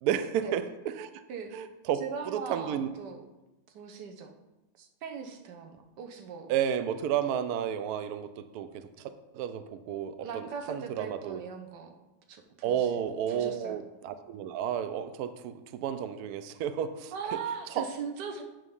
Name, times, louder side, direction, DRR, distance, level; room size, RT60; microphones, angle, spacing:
voice 1, 0.0-1.2 1.5-2.0 2.3-2.9 6.5-8.8 9.3-11.4 12.6-17.1 17.8-17.9, right 9 dB, 85° right, 11 dB, 0.8 m, -32 dB
voice 2, 1.9-3.2 3.7-4.4 4.8-6.5 10.2-12.0 12.3-13.0 13.3-13.8 17.1-18.4, right 6 dB, 65° right, 4 dB, 1.4 m, -39 dB
8.9 x 3.7 x 5.4 m, 1.0 s
omnidirectional pair, 2.1 m